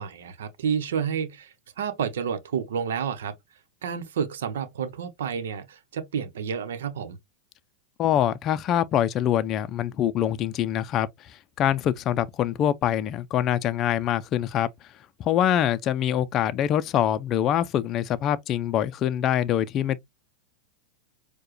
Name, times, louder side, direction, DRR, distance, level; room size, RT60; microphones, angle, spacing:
voice 1, 0.0-3.3 3.8-7.2, right 7 dB, 85° right, 0.8 m, -30 dB
voice 2, 8.0-11.1 11.6-14.7 15.2-20.0, left 10 dB, 35° left, 0.4 m, -24 dB
4.6 x 2.2 x 3.0 m
supercardioid pair, 135°, 0 cm